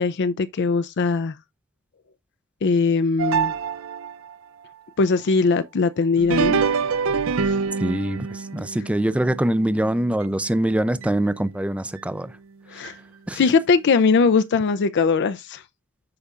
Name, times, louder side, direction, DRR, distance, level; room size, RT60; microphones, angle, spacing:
voice 1, 0.0-1.3 2.6-3.5 5.0-6.6 7.5-7.6 12.7-12.9 13.3-15.6, left 4 dB, 55° left, 0.4 m, -20 dB
sound 1, 3.2-4.3 6.2-10.6 11.0-11.1 12.0-12.1 12.8-12.9, right 5 dB, 65° right, 0.5 m, -26 dB
voice 2, 7.8-12.4 12.7-12.9 13.3-13.4, right 1 dB, 5° right, 0.4 m, -24 dB
13.5 x 4.9 x 2.4 m
head